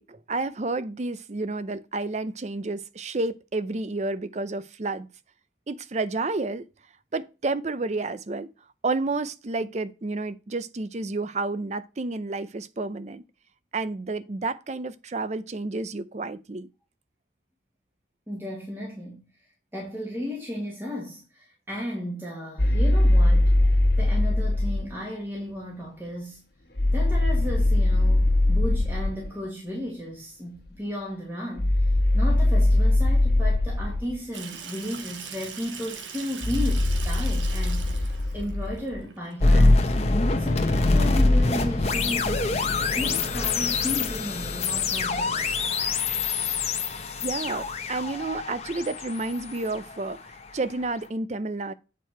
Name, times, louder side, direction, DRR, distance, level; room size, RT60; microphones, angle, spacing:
voice 1, 0.0-5.1 5.7-6.7 7.1-8.5 8.8-13.2 13.7-16.7 47.2-50.2 50.5-51.7, right 3 dB, 40° right, 0.5 m, -30 dB
voice 2, 18.3-19.2 19.7-23.6 24.0-26.4 26.9-40.0 40.4-42.5 43.0-45.5, left 1 dB, 10° right, 1.8 m, -34 dB
sound 1, 22.6-24.9 26.8-29.3 31.6-34.2 36.4-39.0 40.8-41.5, left 1 dB, 60° left, 1.3 m, -21 dB
Water tap faucet / Sink (filling or washing), 34.3-39.8, right 6 dB, 85° right, 1.1 m, -41 dB
sound 2, 39.4-50.4, left 3 dB, 35° left, 0.9 m, -25 dB
8.2 x 4.7 x 4.5 m
head